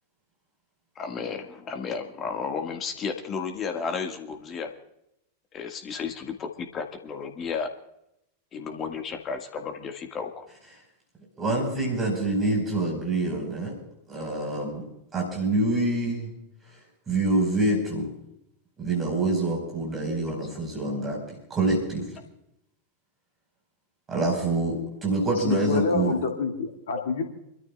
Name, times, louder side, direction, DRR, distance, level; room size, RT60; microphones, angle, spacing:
voice 1, 1.0-4.7 5.5-7.7 8.5-10.5 27.0-27.1, left 5 dB, 30° left, 5 dB, 1.8 m, -33 dB
voice 2, 11.4-13.7 14.1-14.9 15.1-16.3 17.1-18.1 18.8-21.2 21.5-22.2 24.1-26.1, right 2 dB, 20° right, -1 dB, 4.9 m, -26 dB
voice 3, 25.4-27.2, left 5 dB, 60° left, 3 dB, 2.3 m, -27 dB
29.0 x 13.5 x 2.4 m, 0.83 s
figure-of-eight pair, 90°, 0 cm